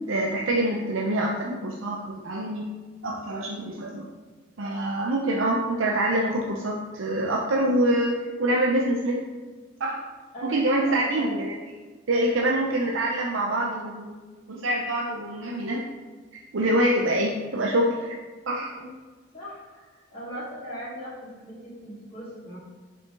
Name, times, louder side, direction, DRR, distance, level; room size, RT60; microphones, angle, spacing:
voice 1, 0.1-2.7 3.0-4.1 4.6-9.3 9.8-10.0 10.4-11.6 12.1-14.2 14.5-15.9 16.3-18.2 18.5-18.7, right 1 dB, 85° right, -1 dB, 0.7 m, -25 dB
voice 2, 10.9-11.3 12.4-12.6 18.8-18.9 19.3-22.6, equal, 30° left, -11 dB, 2.2 m, -39 dB
7.6 x 5.0 x 3.8 m, 1.4 s
head